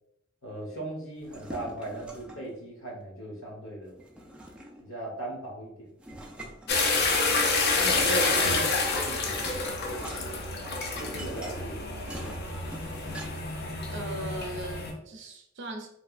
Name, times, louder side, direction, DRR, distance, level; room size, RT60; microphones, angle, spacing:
voice 1, 0.4-4.0 4.8-5.9 7.4-9.6 10.9-12.1, right 1 dB, 85° left, -1 dB, 1.1 m, -38 dB
sound 1, 1.2-2.5 4.0-5.0 6.0-7.4 8.5-13.6, right 1 dB, 5° right, 0.3 m, -45 dB
sound 2, 6.7-14.9, left 3 dB, 55° left, 0.5 m, -28 dB
voice 2, 13.9-15.9, right 1 dB, 60° right, 3 dB, 0.6 m, -38 dB
3.2 x 2.8 x 2.4 m, 0.78 s
head